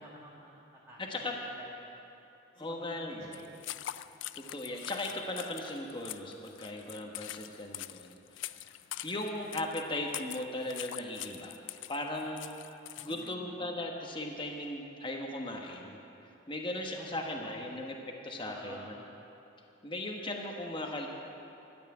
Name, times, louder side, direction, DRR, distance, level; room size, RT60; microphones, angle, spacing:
voice 1, 0.0-1.3 1.8-2.1 2.5-4.0 6.4-6.7 13.0-13.6 16.9-17.8 18.4-19.1, equal, 15° right, -6 dB, 1.5 m, -51 dB
voice 2, 1.0-1.4 2.6-3.3 4.3-8.7 9.0-11.6 11.9-12.6 13.0-16.0 16.5-19.0 19.8-21.1, left 1 dB, 25° left, 1 dB, 1.2 m, -38 dB
sound 1, 3.3-13.3, left 14 dB, 70° left, 0.4 m, -44 dB
13.0 x 8.4 x 9.7 m, 2.9 s
head